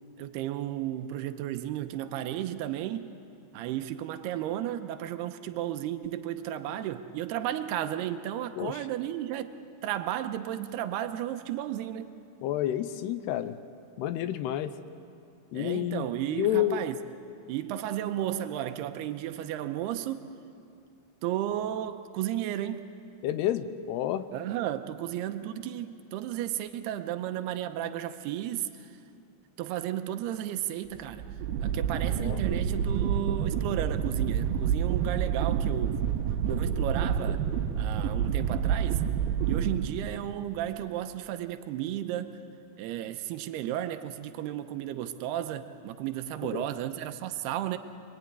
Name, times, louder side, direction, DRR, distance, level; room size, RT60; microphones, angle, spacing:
voice 1, 0.2-3.1 3.5-9.5 9.8-12.1 15.5-17.0 17.5-20.2 21.2-22.9 24.3-29.0 29.6-31.2 31.6-36.0 36.5-37.5 37.8-39.0 39.5-42.4 42.8-47.8, right 12 dB, 90° right, 8 dB, 2.9 m, -33 dB
voice 2, 12.4-13.6 14.0-14.8 15.5-16.8 23.2-24.3 32.1-32.4 46.4-46.7, left 12 dB, 85° left, 11 dB, 2.9 m, -30 dB
sound 1, 30.9-40.5, right 8 dB, 70° right, 2.7 m, -28 dB
26.5 x 21.5 x 9.7 m, 2.4 s
omnidirectional pair, 4.6 m